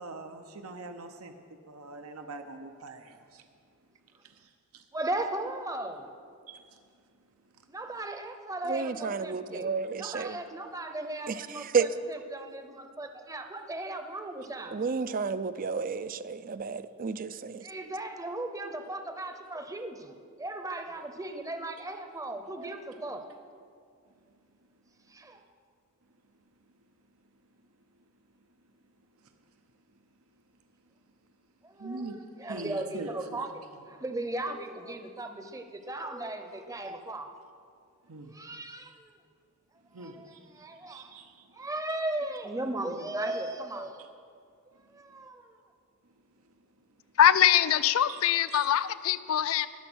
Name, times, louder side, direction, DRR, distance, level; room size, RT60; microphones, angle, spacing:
voice 1, 0.0-1.3 1.7-3.4 4.2-4.8 6.5-6.8 7.5-7.6 31.8-33.5 38.1-38.7 39.9-41.5 48.1-48.2 48.5-48.7, right 2 dB, 75° right, 6 dB, 0.9 m, -43 dB
voice 2, 4.9-6.1 7.7-9.7 10.0-14.8 17.6-23.3 25.1-25.4 31.6-33.5 33.9-37.3 38.3-39.1 40.0-41.1 41.5-44.0 44.9-45.5, right 2 dB, 15° right, 7 dB, 0.8 m, -37 dB
voice 3, 8.7-10.4 11.3-11.9 14.7-17.6, right 5 dB, 40° right, 14 dB, 0.4 m, -31 dB
voice 4, 47.2-49.7, left 10 dB, 70° left, 15 dB, 0.4 m, -23 dB
21.0 x 7.0 x 6.2 m, 2.3 s
head